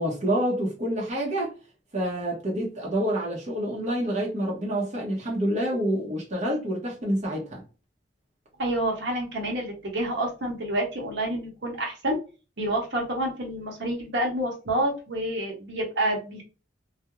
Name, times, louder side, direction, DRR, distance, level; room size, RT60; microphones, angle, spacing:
voice 1, 0.0-1.5 1.9-7.6, equal, 40° right, 0.7 m, -27 dB
voice 2, 8.6-12.2 12.6-16.4, right 1 dB, 65° right, 0.8 m, -28 dB
2.3 x 2.0 x 2.9 m
head